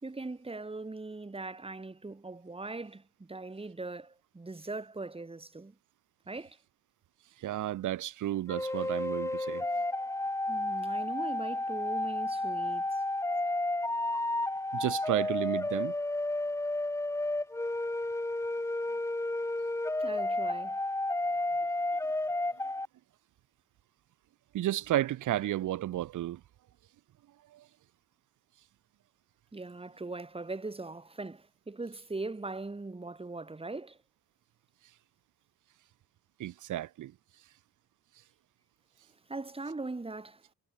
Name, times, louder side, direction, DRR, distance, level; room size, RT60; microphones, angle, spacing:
voice 1, 0.0-5.8 6.3-6.6 10.5-13.0 20.0-20.8 29.5-34.0 39.3-40.4, right 3 dB, 20° right, 4.3 m, -40 dB
voice 2, 7.4-9.7 14.1-14.3 14.7-15.9 24.5-26.4 27.5-27.7 36.4-37.1, right 13 dB, 80° right, 4.5 m, -32 dB
sound 1, 8.5-22.9, left 2 dB, 10° left, 1.3 m, -32 dB
cardioid pair, 90°, 30 cm